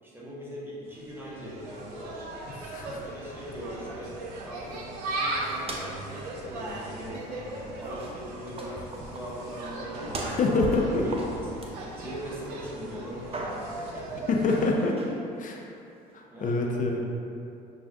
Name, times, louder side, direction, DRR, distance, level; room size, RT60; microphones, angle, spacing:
voice 1, 0.0-2.3 2.9-14.2 16.3-16.6, equal, 10° right, -6 dB, 1.1 m, -41 dB
Insect, 0.9-14.7, right 2 dB, 75° right, 0.5 m, -38 dB
voice 2, 2.6-3.0 10.3-11.0 14.3-15.0 15.4-15.6 16.1-17.1, left 3 dB, 40° left, 1 dB, 0.6 m, -26 dB
sound 1, 5.4-6.1 6.4-6.5 7.1-7.5 7.8-12.5 12.8-13.8 14.5-15.2, right 2 dB, 25° right, 0.6 m, -39 dB
6.0 x 2.3 x 2.5 m, 2.6 s
hypercardioid pair, 60°, 21 cm